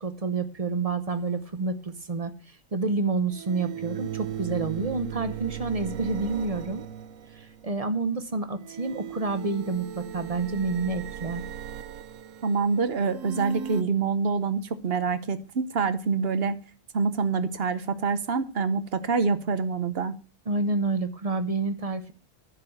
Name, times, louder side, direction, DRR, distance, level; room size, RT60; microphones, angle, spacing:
voice 1, 0.0-6.8 7.3-11.4 20.5-22.1, right 3 dB, 35° right, 10 dB, 0.8 m, -29 dB
sound 1, 1.1-1.2 3.3-7.7 8.6-13.8, right 10 dB, 90° right, 1.1 m, -38 dB
voice 2, 12.4-16.6 16.9-20.1, right 5 dB, 55° right, 12 dB, 1.1 m, -26 dB
10.0 x 6.0 x 7.8 m, 0.38 s
omnidirectional pair, 1.3 m